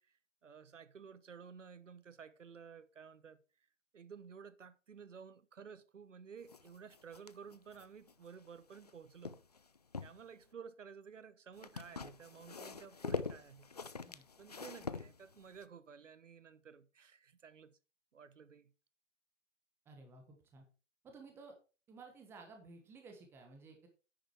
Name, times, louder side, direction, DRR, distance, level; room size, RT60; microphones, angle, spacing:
voice 1, 0.0-3.4 3.9-9.4 10.0-13.7 14.4-17.8 18.1-18.7, right 6 dB, 75° right, 1.0 m, -54 dB
sound 1, 6.5-8.9 9.2-10.2 11.6-15.6, left 4 dB, 35° left, 0.4 m, -44 dB
voice 2, 19.8-20.6 21.0-21.5 21.9-23.9, right 3 dB, 5° right, 1.2 m, -55 dB
10.0 x 6.6 x 4.5 m
hypercardioid pair, 150°, 37 cm